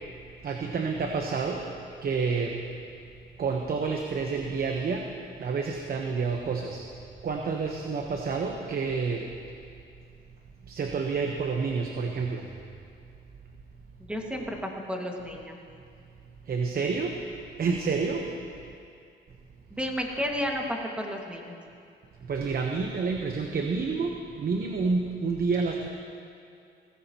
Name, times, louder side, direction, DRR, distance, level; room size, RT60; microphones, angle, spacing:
voice 1, 0.4-1.7 2.0-2.7 3.4-5.1 5.4-6.9 7.2-9.3 10.7-12.5 16.4-17.2 17.6-18.5 22.2-25.9, right 4 dB, 50° right, 2 dB, 1.1 m, -29 dB
voice 2, 14.0-15.6 19.7-21.6, equal, 5° right, 0 dB, 2.0 m, -32 dB
18.0 x 15.5 x 3.0 m, 2.4 s
cardioid pair, 90°, 20 cm